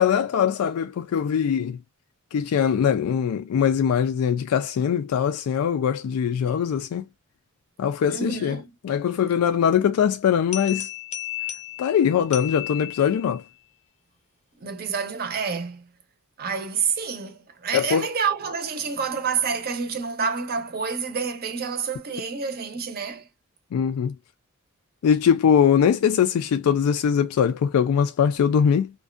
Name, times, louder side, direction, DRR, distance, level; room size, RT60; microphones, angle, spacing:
voice 1, 0.0-1.8 2.3-7.0 7.8-8.6 8.8-10.9 11.8-13.4 17.7-18.1 23.7-24.1 25.0-28.9, left 8 dB, 90° left, 0.3 m, -21 dB
voice 2, 8.1-8.7 14.6-15.9 16.4-23.3, right 6 dB, 45° right, 0.6 m, -28 dB
sound 1, 10.5-13.5, left 12 dB, 30° left, 0.5 m, -34 dB
2.5 x 2.2 x 2.3 m
head